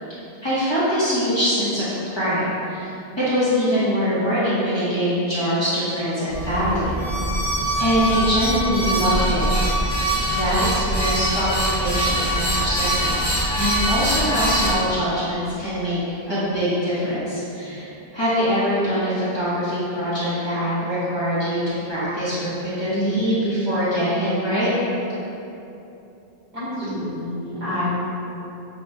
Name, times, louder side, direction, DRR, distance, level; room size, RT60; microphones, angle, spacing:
voice 1, 0.4-7.0 7.8-9.4 10.3-16.0 16.3-24.7, equal, 30° left, -12 dB, 0.8 m, -23 dB
sound 1, 6.3-14.7, right 1 dB, 40° right, 1.3 m, -23 dB
voice 2, 26.5-28.1, left 1 dB, 65° right, -11 dB, 1.7 m, -27 dB
5.9 x 2.2 x 2.7 m, 2.9 s
omnidirectional pair, 1.0 m